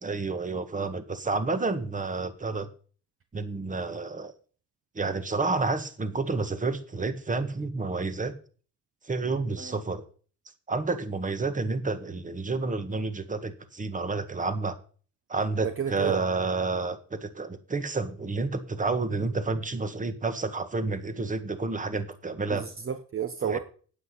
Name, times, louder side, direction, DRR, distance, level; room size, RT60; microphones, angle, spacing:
voice 1, 0.0-2.7 3.3-4.3 5.0-8.3 9.1-10.0 10.7-14.8 15.3-22.7 23.4-23.6, right 3 dB, 25° right, 10 dB, 1.7 m, -30 dB
voice 2, 15.6-16.2 22.5-23.6, right 8 dB, 45° right, 9 dB, 1.1 m, -31 dB
9.2 x 8.6 x 5.5 m, 0.40 s
cardioid pair, 90°, 30 cm